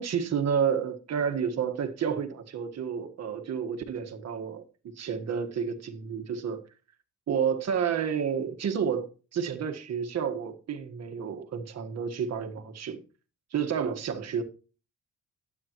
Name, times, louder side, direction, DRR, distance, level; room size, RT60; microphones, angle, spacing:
voice 1, 0.0-6.6 7.3-13.0 13.5-14.4, right 7 dB, 60° right, 1.5 m, -30 dB
12.0 x 8.7 x 3.0 m
cardioid pair, 90°, 30 cm